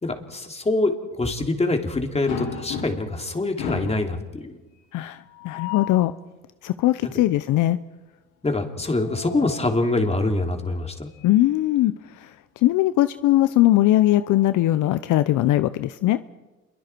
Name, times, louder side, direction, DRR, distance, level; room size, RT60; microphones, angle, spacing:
voice 1, 0.0-4.6 8.4-11.1, left 2 dB, 20° left, 4 dB, 3.3 m, -25 dB
sound 1, 2.3-3.2 3.6-4.1 5.3-6.0 8.7-9.7 11.1-11.3 11.7-11.8 13.3-14.6, left 7 dB, 90° left, 6.0 m, -35 dB
voice 2, 4.9-6.1 6.6-7.8 11.2-16.2, left 15 dB, 60° left, 13 dB, 0.8 m, -20 dB
28.0 x 23.5 x 4.6 m, 1.2 s
supercardioid pair, 80°, 34 cm